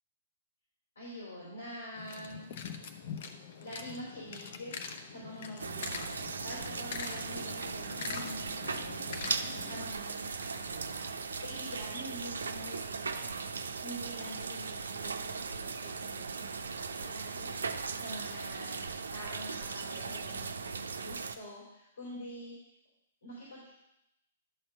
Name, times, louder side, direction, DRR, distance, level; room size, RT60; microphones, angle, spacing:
voice 1, 1.0-2.5 3.6-4.7 5.1-11.1 11.4-13.5 13.8-17.5 17.9-22.5 23.2-23.7, equal, 70° left, -7 dB, 3.9 m, -46 dB
sound 1, 2.0-9.8, left 6 dB, 50° left, 0.8 m, -43 dB
sound 2, 5.6-21.4, right 5 dB, 70° right, 0.5 m, -38 dB
11.5 x 4.4 x 5.4 m, 0.85 s
figure-of-eight pair, 115°, 0 cm